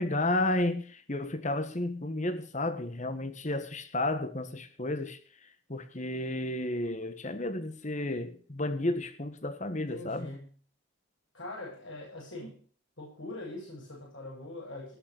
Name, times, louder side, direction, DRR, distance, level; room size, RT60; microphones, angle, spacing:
voice 1, 0.0-5.2 5.7-10.3, left 1 dB, 35° left, 1.4 m, -32 dB
voice 2, 9.9-10.5 11.3-12.6 13.0-14.9, left 2 dB, 60° left, 8.0 m, -42 dB
19.5 x 6.7 x 6.6 m
head